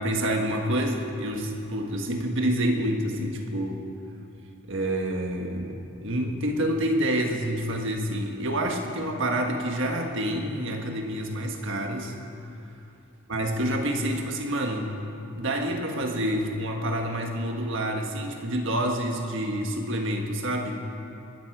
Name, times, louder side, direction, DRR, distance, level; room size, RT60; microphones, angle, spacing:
voice 1, 0.0-3.8 4.7-12.1 13.3-14.9 15.4-20.8, right 1 dB, 55° right, 2 dB, 1.6 m, -28 dB
22.0 x 12.5 x 4.8 m, 2.8 s
head